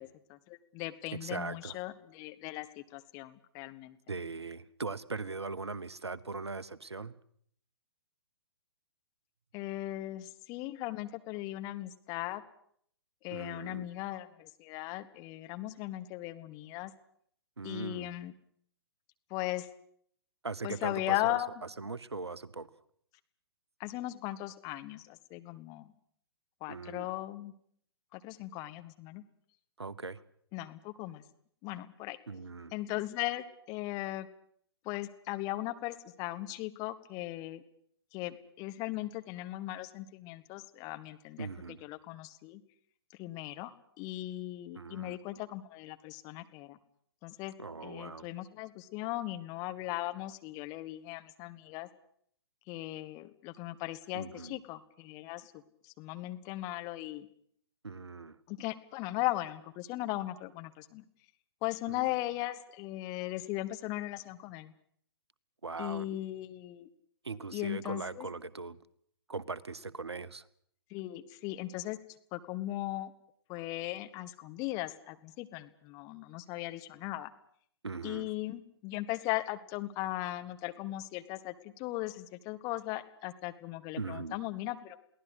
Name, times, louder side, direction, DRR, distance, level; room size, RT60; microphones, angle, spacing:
voice 1, 0.0-4.0 9.5-12.4 13.2-16.9 17.6-18.3 19.3-19.7 20.6-21.5 23.8-25.9 26.6-27.5 28.1-29.2 30.5-31.2 31.6-32.2 32.7-34.3 34.8-37.6 38.1-41.5 41.8-42.6 43.2-43.7 44.0-46.8 47.2-47.5 47.8-51.9 52.7-55.5 55.8-57.3 58.5-61.0 61.6-64.7 65.8-66.9 67.5-68.3 70.9-72.0 72.3-73.1 73.5-77.3 78.0-85.0, left 16 dB, 25° left, 9 dB, 1.4 m, -38 dB
voice 2, 1.1-1.8 4.1-7.2 13.3-13.9 17.6-18.1 20.4-21.4 21.8-22.7 26.7-27.1 29.8-30.2 32.3-32.7 41.4-41.8 44.7-45.2 47.6-48.3 54.1-54.6 57.8-58.4 61.9-62.1 65.6-66.2 67.2-68.8 69.3-70.5 77.8-78.3 84.0-84.4, right 4 dB, 80° right, 18 dB, 1.1 m, -40 dB
23.0 x 17.0 x 8.2 m, 0.64 s
figure-of-eight pair, 120°, 14 cm